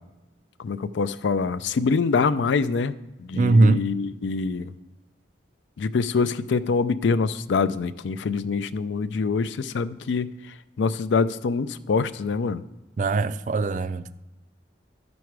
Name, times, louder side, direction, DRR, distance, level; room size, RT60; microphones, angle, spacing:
voice 1, 0.6-4.7 5.8-12.6, left 4 dB, 75° left, 0.4 m, -25 dB
voice 2, 3.3-3.8 13.0-14.1, right 3 dB, 40° right, 0.3 m, -20 dB
11.5 x 6.1 x 4.7 m
head